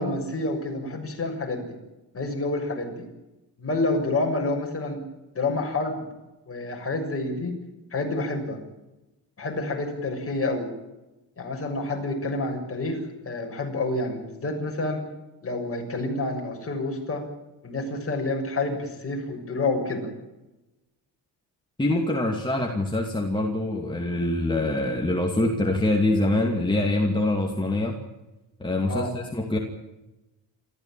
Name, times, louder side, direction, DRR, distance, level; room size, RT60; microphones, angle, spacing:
voice 1, 0.0-1.7 2.1-3.1 3.6-5.0 5.3-6.0 6.5-7.5 7.9-8.6 9.4-10.7 11.4-15.0 15.4-17.2 17.6-20.1 28.9-29.1, left 2 dB, 35° left, 1 dB, 6.7 m, -28 dB
voice 2, 21.8-28.0 28.6-29.6, left 2 dB, 10° left, 1 dB, 2.4 m, -24 dB
27.0 x 14.5 x 9.1 m, 1.0 s
cardioid pair, 130°, 40 cm